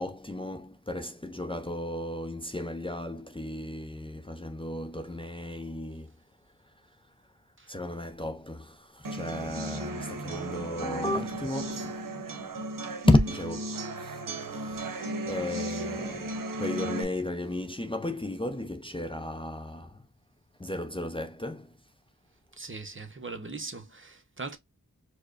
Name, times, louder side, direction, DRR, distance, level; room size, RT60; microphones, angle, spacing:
voice 1, 0.0-6.1 7.7-12.0 13.1-14.2 14.5-20.0 20.6-21.7, left 1 dB, 15° left, 0.5 m, -33 dB
sound 1, 9.0-17.0, right 2 dB, 80° right, 0.7 m, -35 dB
voice 2, 22.5-24.6, right 3 dB, 40° right, 0.8 m, -40 dB
4.7 x 2.1 x 2.4 m
wide cardioid pair, 55°, 32 cm